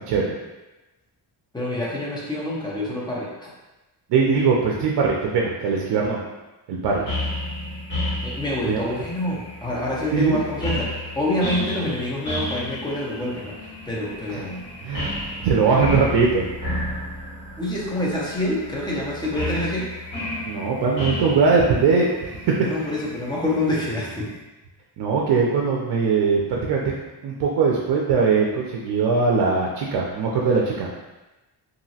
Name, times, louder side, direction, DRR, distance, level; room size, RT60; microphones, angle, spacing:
voice 1, 1.5-3.5 8.2-14.6 17.6-19.8 22.6-24.3, left 1 dB, 10° left, -6 dB, 0.5 m, -27 dB
voice 2, 4.1-6.2 6.7-7.0 8.7-8.8 10.1-10.4 14.3-14.4 14.8-15.1 15.4-16.4 20.4-22.5 25.0-26.8 27.2-30.9, right 5 dB, 70° right, -2 dB, 0.5 m, -21 dB
sound 1, 7.1-24.3, left 1 dB, 25° left, 1.5 m, -32 dB
2.9 x 2.6 x 2.7 m, 1.1 s
wide cardioid pair, 165°, 42 cm